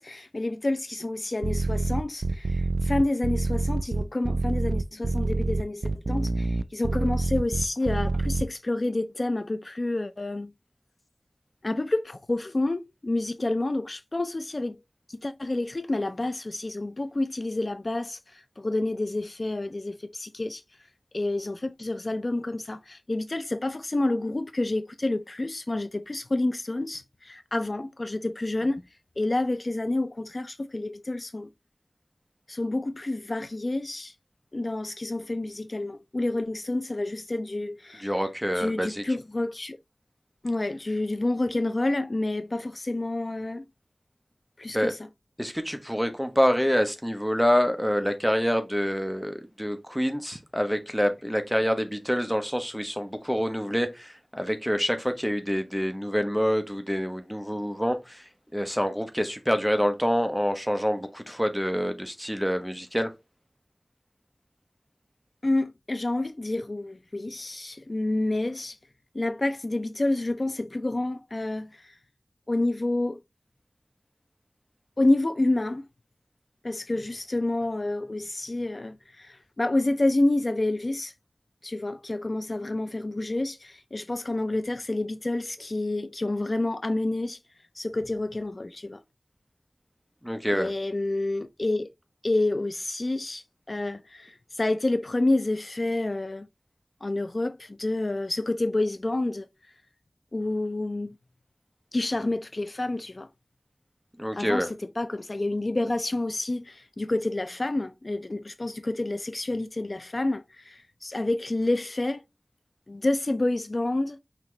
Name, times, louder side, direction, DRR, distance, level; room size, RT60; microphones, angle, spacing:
voice 1, 0.0-10.5 11.6-14.8 15.1-20.6 21.1-28.8 29.2-31.5 32.5-34.1 34.5-38.1 38.5-39.8 40.4-43.7 44.6-45.0 65.4-68.8 69.1-72.0 72.5-73.2 75.0-75.8 76.6-81.1 81.6-87.4 87.7-89.0 90.5-91.9 92.2-96.5 97.0-99.5 100.3-101.2 101.9-103.3 104.3-112.2 112.9-114.2, left 2 dB, 55° left, 0.4 m, -29 dB
sound 1, 1.4-8.4, right 2 dB, 80° right, 0.3 m, -26 dB
voice 2, 38.0-39.2 44.7-44.9 45.4-58.2 58.5-63.1 90.2-90.7 104.2-104.7, equal, ahead, 1.0 m, -26 dB
5.7 x 2.9 x 3.1 m
wide cardioid pair, 55°, 0 cm